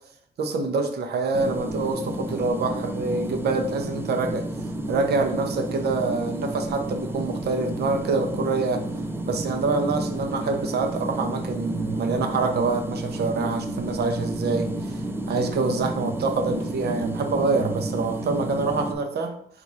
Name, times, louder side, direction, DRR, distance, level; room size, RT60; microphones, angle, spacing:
voice 1, 0.4-4.5 4.9-8.8 9.2-15.0 15.3-19.4, right 3 dB, 80° right, 5 dB, 0.7 m, -26 dB
sound 1, 1.3-18.9, right 1 dB, 15° right, 0.3 m, -31 dB
4.7 x 2.5 x 4.1 m, 0.67 s
wide cardioid pair, 150°, 17 cm